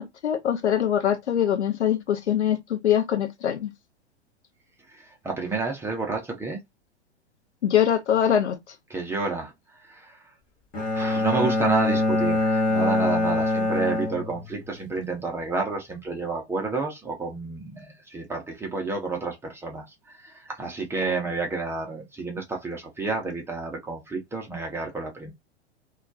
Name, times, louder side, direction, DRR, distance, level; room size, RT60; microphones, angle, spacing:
voice 1, 0.0-3.7 7.6-8.6, left 9 dB, 80° left, 0.6 m, -23 dB
voice 2, 4.9-6.6 8.9-9.5 9.8-10.2 10.9-25.3, right 3 dB, 5° right, 0.5 m, -30 dB
Bowed string instrument, 10.7-14.8, left 2 dB, 25° left, 0.9 m, -24 dB
2.2 x 2.1 x 2.6 m
figure-of-eight pair, 105°, 34 cm